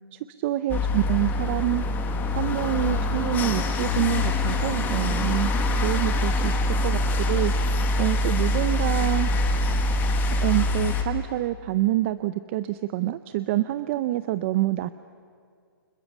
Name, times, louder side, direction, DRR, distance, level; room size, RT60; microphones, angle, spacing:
voice 1, 0.1-1.8 2.3-5.5 5.8-6.5 6.8-7.5 8.0-9.3 10.4-14.9, right 15 dB, 30° right, 13 dB, 0.6 m, -26 dB
sound 1, 0.7-11.0, left 2 dB, 15° left, 1.8 m, -24 dB
29.5 x 26.0 x 7.3 m, 2.1 s
hypercardioid pair, 155°, 13 cm